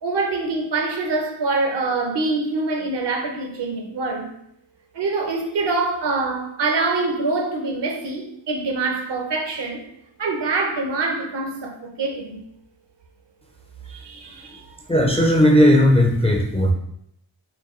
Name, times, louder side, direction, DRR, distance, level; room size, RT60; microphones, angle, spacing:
voice 1, 0.0-4.3 4.9-9.8 10.2-12.4 13.9-14.6, right 3 dB, 65° right, 0.7 m, -25 dB
voice 2, 14.9-16.7, equal, 15° left, 0.4 m, -16 dB
4.5 x 2.3 x 3.0 m
wide cardioid pair, 100°, 46 cm